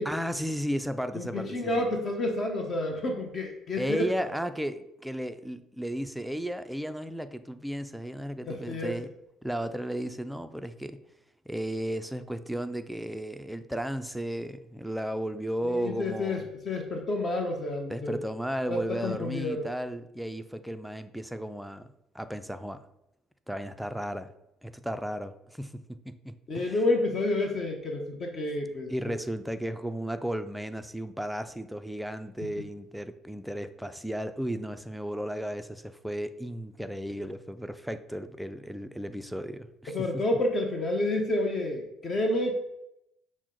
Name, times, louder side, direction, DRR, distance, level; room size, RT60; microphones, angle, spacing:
voice 1, 0.1-1.8 3.8-9.1 9.4-11.0 11.5-16.5 17.9-21.9 22.1-22.8 23.5-24.3 24.6-26.8 28.9-40.2, equal, ahead, 10 dB, 0.3 m, -34 dB
voice 2, 1.1-4.0 8.4-9.0 15.6-18.2 18.7-19.7 26.5-28.9 39.9-42.5, left 2 dB, 45° left, 3 dB, 0.7 m, -29 dB
6.1 x 2.1 x 3.8 m, 0.83 s
supercardioid pair, 90°, 0 cm